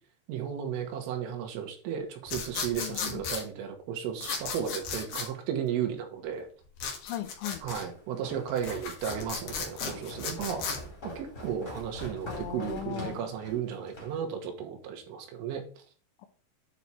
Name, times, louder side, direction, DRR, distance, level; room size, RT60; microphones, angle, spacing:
voice 1, 0.3-6.5 7.6-10.7 11.0-15.6, right 8 dB, 80° right, 4 dB, 4.0 m, -34 dB
sound 1, 2.3-3.4 4.2-5.3 6.8-7.9 8.5-10.8, left 5 dB, 60° left, 2.0 m, -35 dB
voice 2, 2.8-3.2 7.0-7.6 12.2-13.2, left 12 dB, 80° left, 8 dB, 3.0 m, -37 dB
Walk footsteps, 7.7-14.2, left 1 dB, 20° left, 2.7 m, -44 dB
9.2 x 4.8 x 4.3 m, 0.41 s
omnidirectional pair, 5.7 m